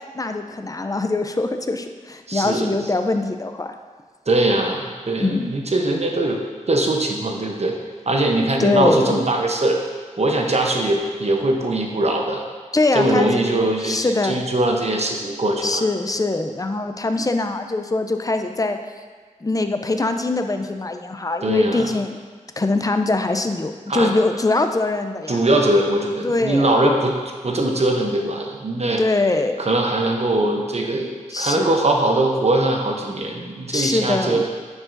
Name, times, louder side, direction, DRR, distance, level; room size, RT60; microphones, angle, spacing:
voice 1, 0.1-3.8 5.2-5.5 8.6-9.2 12.7-14.4 15.6-18.8 19.4-22.2 22.6-25.4 26.2-26.8 29.0-29.6 31.3-31.8 33.7-34.4, left 2 dB, 25° left, 7 dB, 0.5 m, -22 dB
voice 2, 2.3-2.7 4.3-6.4 6.7-7.7 8.1-9.8 10.2-12.4 12.9-15.8 21.4-21.9 23.9-24.1 25.3-27.1 27.4-29.0 29.6-34.5, right 1 dB, 55° right, 1 dB, 0.8 m, -21 dB
9.6 x 4.8 x 2.6 m, 1.5 s
wide cardioid pair, 55°, 13 cm